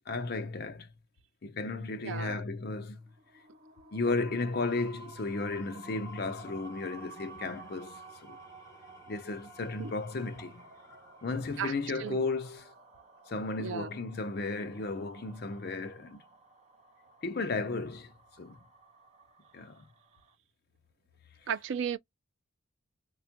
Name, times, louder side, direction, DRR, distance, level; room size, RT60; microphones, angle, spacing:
voice 1, 0.1-0.9 1.4-3.1 3.9-8.4 9.1-10.6 11.2-12.7 13.3-16.2 17.2-18.1 18.4-18.6 19.5-19.9, left 3 dB, 45° left, 0.5 m, -34 dB
voice 2, 2.0-2.4 9.8-9.9 11.6-12.2 13.6-13.9 21.5-22.0, right 7 dB, 60° right, 0.4 m, -35 dB
sound 1, 3.0-20.3, right 2 dB, 30° right, 0.8 m, -53 dB
Engine / Tools, 4.4-11.9, right 1 dB, 15° left, 0.8 m, -58 dB
4.2 x 2.3 x 2.8 m
head